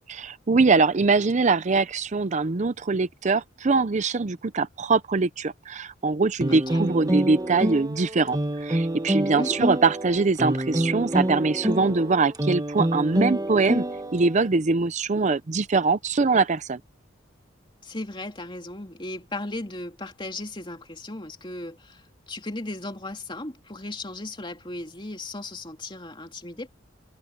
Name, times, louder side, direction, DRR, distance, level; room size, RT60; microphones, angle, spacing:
voice 1, 0.1-13.8 14.1-16.8, right 4 dB, 40° right, 0.6 m, -23 dB
sound 1, 6.4-14.5, right 1 dB, 20° right, 1.4 m, -27 dB
voice 2, 6.5-6.8 9.4-9.6 17.8-26.7, left 2 dB, 25° left, 2.9 m, -36 dB
head